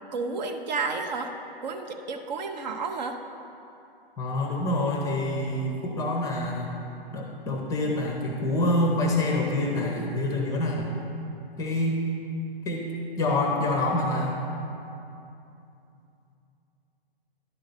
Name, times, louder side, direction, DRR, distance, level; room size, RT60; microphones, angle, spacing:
voice 1, 0.1-1.3 1.6-3.2, right 4 dB, 45° right, 5 dB, 0.7 m, -31 dB
voice 2, 4.2-6.7 7.1-10.9 11.6-12.0 12.6-12.9 13.2-14.4, left 1 dB, 10° left, 1 dB, 0.6 m, -26 dB
11.0 x 3.8 x 6.6 m, 2.7 s
hypercardioid pair, 130°, 30 cm